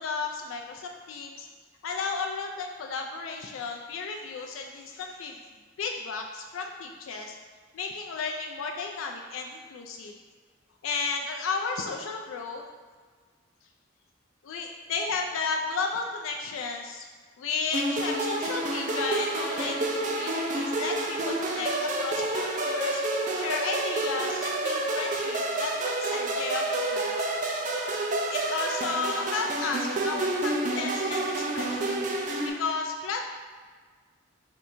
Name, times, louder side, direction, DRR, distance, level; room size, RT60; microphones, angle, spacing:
voice 1, 0.0-1.5 1.8-5.4 5.8-7.4 7.7-10.1 10.8-12.6 14.4-17.1 17.4-23.0 23.3-27.1 28.3-32.1 32.4-33.3, left 4 dB, 85° left, 2 dB, 0.4 m, -33 dB
sound 1, 17.7-32.5, right 2 dB, 40° right, 0.4 m, -29 dB
3.4 x 2.6 x 4.3 m, 1.5 s
head